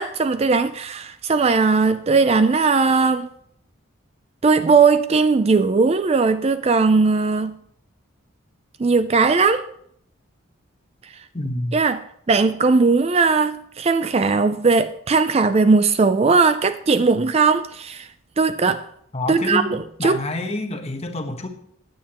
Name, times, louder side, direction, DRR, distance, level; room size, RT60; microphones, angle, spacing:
voice 1, 0.0-3.3 4.4-7.6 8.8-9.6 11.7-12.0 12.3-18.1 18.4-18.8 19.3-20.2, right 4 dB, 30° right, 0.4 m, -18 dB
voice 2, 11.3-11.8 19.1-19.7 20.0-21.5, left 2 dB, 30° left, 1.1 m, -27 dB
16.0 x 9.4 x 3.0 m
head